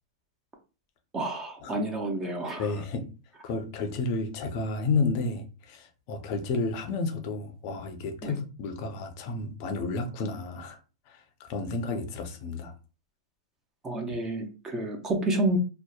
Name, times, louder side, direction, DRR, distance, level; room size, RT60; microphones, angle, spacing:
voice 1, 1.1-2.7 8.2-8.3 13.8-15.6, right 2 dB, 15° right, 0.4 m, -29 dB
voice 2, 2.6-3.1 3.4-10.8 11.1-12.7, left 3 dB, 40° left, 0.5 m, -31 dB
2.7 x 2.0 x 2.2 m
supercardioid pair, 155°, 3 cm